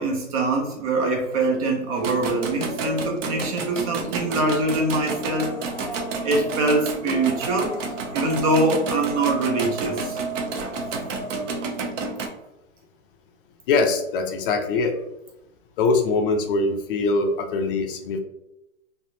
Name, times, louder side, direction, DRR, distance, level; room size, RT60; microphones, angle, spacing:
voice 1, 0.0-5.5 6.2-7.7 8.1-10.2, right 2 dB, 30° right, 1 dB, 0.4 m, -23 dB
sound 1, 1.1-1.7 2.0-3.9 4.6-11.8, equal, 10° right, 0.8 m, -36 dB
sound 2, 2.0-12.3, right 4 dB, 65° right, 0.8 m, -31 dB
voice 2, 13.7-15.0 15.8-18.2, left 3 dB, 40° left, 4 dB, 0.5 m, -22 dB
3.3 x 2.4 x 2.7 m, 0.87 s
hypercardioid pair, 125°, 41 cm